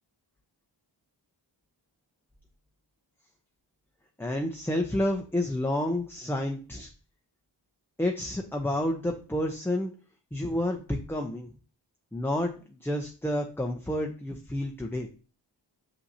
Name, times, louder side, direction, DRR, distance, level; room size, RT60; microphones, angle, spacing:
voice 1, 4.2-6.9 8.0-9.9 10.3-11.5 12.1-15.1, left 1 dB, 5° left, 2 dB, 0.7 m, -30 dB
6.3 x 5.7 x 2.8 m, 0.36 s
wide cardioid pair, 75°, 45 cm